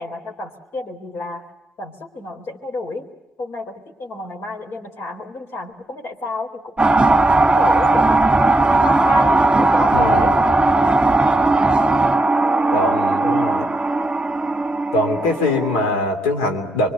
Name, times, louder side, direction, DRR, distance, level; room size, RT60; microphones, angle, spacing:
voice 1, 0.0-1.5 1.8-3.1 3.4-8.2 8.8-10.3 12.4-13.5, left 1 dB, 65° left, 2 dB, 4.4 m, -30 dB
sound 1, 6.8-15.9, right 2 dB, 20° right, 1.5 m, -17 dB
voice 2, 9.9-10.3 12.7-13.7 14.9-16.9, left 2 dB, 90° left, 4 dB, 3.0 m, -22 dB
25.0 x 24.0 x 8.2 m, 0.92 s
supercardioid pair, 55°, 4 cm